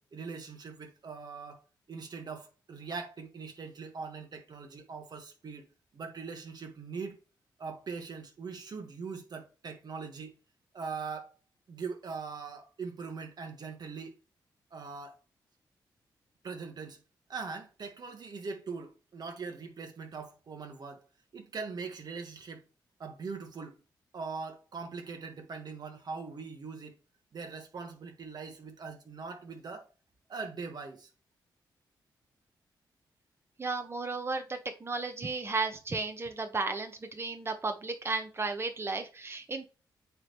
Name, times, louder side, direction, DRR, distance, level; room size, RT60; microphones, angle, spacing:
voice 1, 0.0-1.6 1.9-5.7 5.9-7.2 7.6-10.3 10.7-11.4 11.7-14.1 14.7-15.2 16.4-17.0 17.3-21.0 21.3-22.6 23.0-23.8 24.1-26.9 27.3-29.9 30.3-31.1, right 5 dB, 55° right, 1.6 m, -41 dB
voice 2, 33.6-39.7, right 3 dB, 30° right, 1.3 m, -34 dB
8.8 x 3.5 x 3.2 m
cardioid pair, 70°, 8 cm